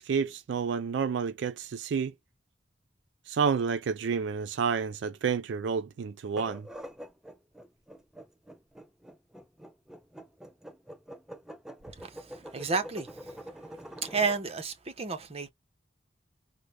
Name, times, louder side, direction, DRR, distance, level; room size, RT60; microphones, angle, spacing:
voice 1, 0.0-2.1 3.3-6.7, right 6 dB, 75° right, 0.4 m, -30 dB
sound 1, 6.2-14.4, equal, 5° right, 0.4 m, -45 dB
voice 2, 11.9-13.4 14.0-15.5, right 4 dB, 35° right, 0.8 m, -32 dB
3.7 x 2.1 x 3.2 m
head